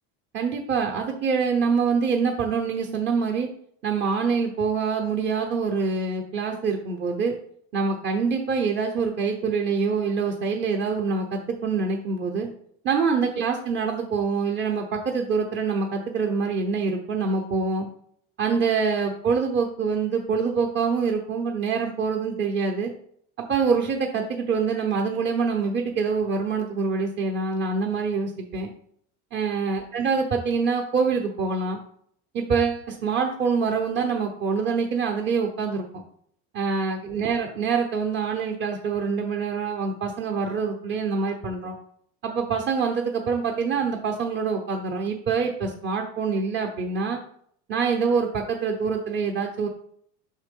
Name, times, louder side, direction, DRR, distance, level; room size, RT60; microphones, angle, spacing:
voice 1, 0.3-3.5 3.8-7.3 7.7-12.5 12.8-17.9 18.4-22.9 23.4-28.7 29.3-31.8 32.3-36.0 36.5-41.8 42.2-47.2 47.7-49.7, right 5 dB, 30° right, 1 dB, 0.8 m, -25 dB
5.7 x 3.7 x 5.3 m, 0.64 s
supercardioid pair, 135°, 35 cm